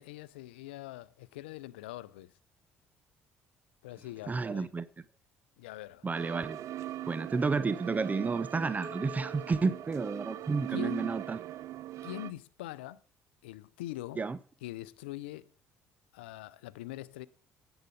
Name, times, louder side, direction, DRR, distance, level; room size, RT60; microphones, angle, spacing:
voice 1, 0.0-2.3 3.8-4.7 5.6-6.1 10.7-11.3 12.0-13.0 13.4-14.3 14.6-15.5 16.1-17.3, left 15 dB, 90° left, 0.5 m, -43 dB
voice 2, 4.3-4.9 6.0-6.6 7.1-11.4 14.2-14.4, right 4 dB, 30° right, 0.7 m, -31 dB
sound 1, 6.1-12.3, right 14 dB, 65° right, 0.5 m, -40 dB
sound 2, 8.8-11.2, left 4 dB, 20° left, 4.0 m, -53 dB
10.5 x 7.9 x 5.1 m
hypercardioid pair, 60°, 6 cm